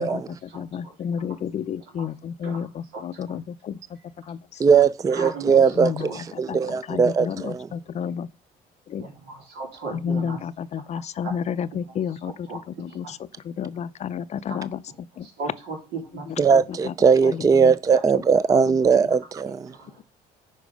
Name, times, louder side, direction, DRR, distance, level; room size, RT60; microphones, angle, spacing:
voice 1, 0.0-3.8 4.3-4.6 5.8-6.6 6.9-8.3 8.9-9.1 9.9-13.2 13.4-14.8 15.2-15.3 16.1-16.4 16.8-16.9 17.2-17.7 18.1-18.2, left 7 dB, 40° left, 0.5 m, -31 dB
voice 2, 0.5-0.9 2.0-2.1 2.4-2.6 2.9-3.0 5.1-6.2 9.0-10.4 12.5-12.6 12.9-13.1 14.5-14.6 15.2-15.8 16.1-16.3 18.5-18.6 19.8-19.9, right 3 dB, 85° right, 3.5 m, -36 dB
voice 3, 4.6-7.7 16.4-19.7, right 6 dB, 20° right, 0.4 m, -19 dB
9.8 x 4.6 x 5.2 m
cardioid pair, 110°, 17 cm